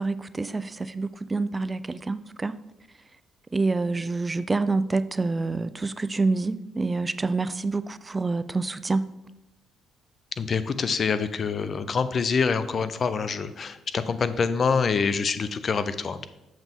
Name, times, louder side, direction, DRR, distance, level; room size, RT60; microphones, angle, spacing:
voice 1, 0.0-2.6 3.5-9.1, right 3 dB, 25° right, 0.4 m, -27 dB
voice 2, 10.4-16.2, left 5 dB, 50° left, 0.6 m, -26 dB
7.2 x 5.9 x 3.6 m
supercardioid pair, 60°, 0 cm